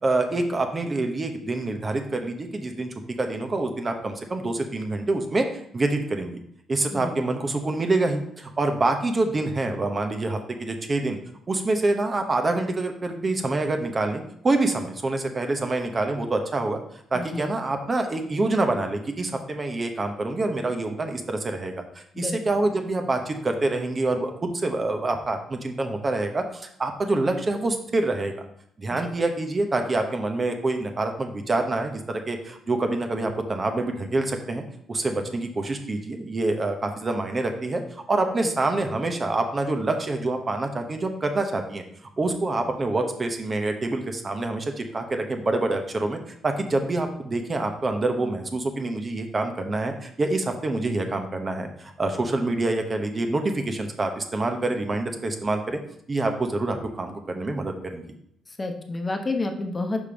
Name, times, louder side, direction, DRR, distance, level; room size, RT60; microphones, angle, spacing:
voice 1, 0.0-2.9 3.2-6.4 6.7-11.2 11.5-16.8 17.1-28.5 28.8-34.6 34.9-41.8 42.2-46.2 46.4-55.8 56.1-58.0, right 2 dB, 30° right, 5 dB, 0.9 m, -26 dB
voice 2, 6.9-7.4 17.1-17.6 22.1-22.4 58.5-60.0, left 2 dB, 25° left, 5 dB, 1.1 m, -30 dB
5.2 x 5.2 x 5.0 m, 0.69 s
cardioid pair, 90°, 0 cm